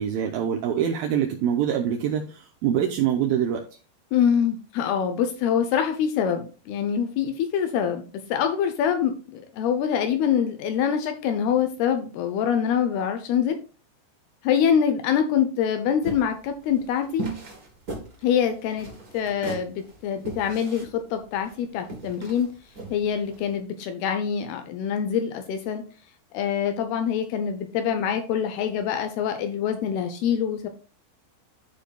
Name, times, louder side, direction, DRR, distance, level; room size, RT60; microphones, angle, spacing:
voice 1, 0.0-3.6, right 9 dB, 80° right, 2 dB, 2.2 m, -24 dB
voice 2, 4.1-13.6 14.4-17.2 18.2-18.9 19.1-22.5 22.9-25.8 26.3-30.7, left 8 dB, 80° left, 7 dB, 2.4 m, -25 dB
sound 1, 16.0-23.5, right 3 dB, 30° right, 1.8 m, -38 dB
13.5 x 5.0 x 2.3 m, 0.36 s
omnidirectional pair, 5.1 m